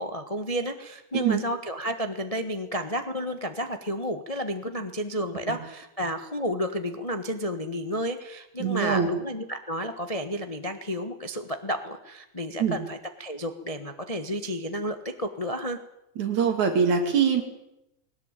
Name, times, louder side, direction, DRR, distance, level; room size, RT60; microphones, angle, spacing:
voice 1, 0.0-15.8, equal, 70° left, 7 dB, 0.3 m, -31 dB
voice 2, 8.6-9.1 12.6-12.8 16.2-17.4, right 6 dB, 70° right, 5 dB, 4.1 m, -23 dB
20.5 x 18.0 x 9.0 m, 0.85 s
omnidirectional pair, 3.5 m